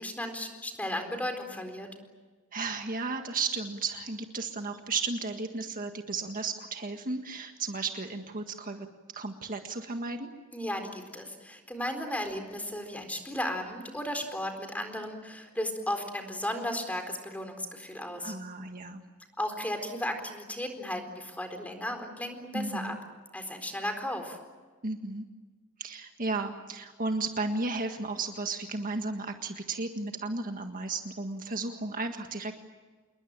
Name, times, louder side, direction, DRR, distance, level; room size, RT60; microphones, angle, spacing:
voice 1, 0.0-1.9 10.5-18.3 19.4-22.9 23.3-24.4, left 1 dB, 5° left, 6 dB, 4.2 m, -35 dB
voice 2, 2.5-8.9 9.1-10.3 18.2-19.0 22.5-23.0 24.8-25.2 25.8-32.5, right 3 dB, 40° right, 5 dB, 1.7 m, -34 dB
28.0 x 21.5 x 8.9 m, 1.4 s
head